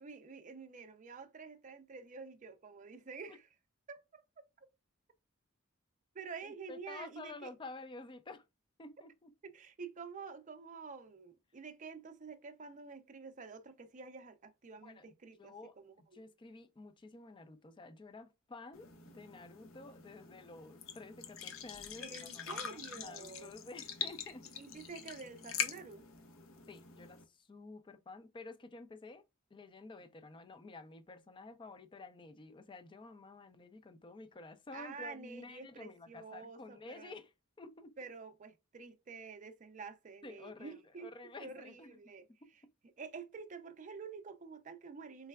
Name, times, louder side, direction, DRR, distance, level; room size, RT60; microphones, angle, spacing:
voice 1, 0.0-3.5 3.9-4.2 4.6-4.7 6.1-7.5 9.4-16.2 22.0-23.5 24.6-26.0 34.7-37.1 38.0-41.1 41.4-42.3 42.5-42.6 43.0-45.3, right 4 dB, 40° right, 0.5 m, -49 dB
voice 2, 6.4-8.5 8.8-9.3 14.8-15.1 15.4-24.5 26.7-29.2 29.5-37.3 37.6-38.0 40.2-42.0 42.4-42.5, left 3 dB, 25° left, 0.4 m, -51 dB
sound 1, 18.7-27.2, left 8 dB, 75° left, 0.7 m, -44 dB
4.6 x 3.2 x 2.3 m
head